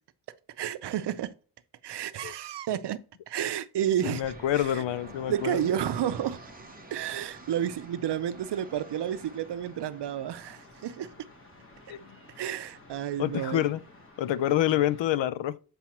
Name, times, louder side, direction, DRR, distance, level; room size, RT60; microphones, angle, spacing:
voice 1, 0.6-1.3 1.8-3.0 3.3-4.2 4.5-4.8 5.3-6.4 6.9-11.1 12.4-13.7, right 10 dB, 70° right, 0.6 m, -31 dB
voice 2, 4.0-5.7 11.9-12.2 13.2-13.8 14.2-15.6, left 12 dB, 85° left, 0.5 m, -27 dB
sound 1, 4.2-15.1, left 3 dB, 30° left, 1.2 m, -54 dB
sound 2, 4.2-14.1, right 4 dB, 20° right, 0.6 m, -50 dB
7.3 x 5.4 x 2.9 m
wide cardioid pair, 170°, 43 cm